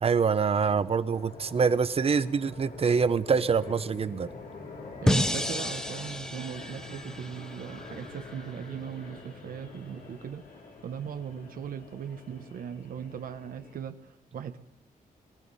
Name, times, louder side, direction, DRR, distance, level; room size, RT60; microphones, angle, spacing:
voice 1, 0.0-4.3, right 5 dB, 45° right, 14 dB, 0.7 m, -25 dB
sound 1, 0.6-13.8, left 3 dB, 90° left, 3.0 m, -46 dB
voice 2, 5.0-10.4 10.8-14.6, right 8 dB, 85° right, 8 dB, 0.9 m, -38 dB
sound 2, 5.1-8.2, left 1 dB, 5° left, 0.8 m, -30 dB
22.0 x 15.0 x 4.1 m, 0.94 s
wide cardioid pair, 120°, 15 cm